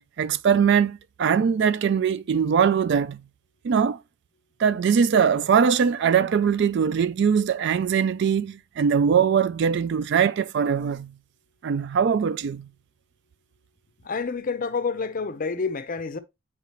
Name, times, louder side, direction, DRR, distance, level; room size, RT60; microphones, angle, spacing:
voice 1, 0.0-3.2 3.6-4.0 4.6-11.1 11.6-12.7, right 7 dB, 50° right, 0.3 m, -21 dB
voice 2, 14.0-16.2, left 4 dB, 40° left, 0.5 m, -28 dB
7.0 x 4.9 x 3.0 m
head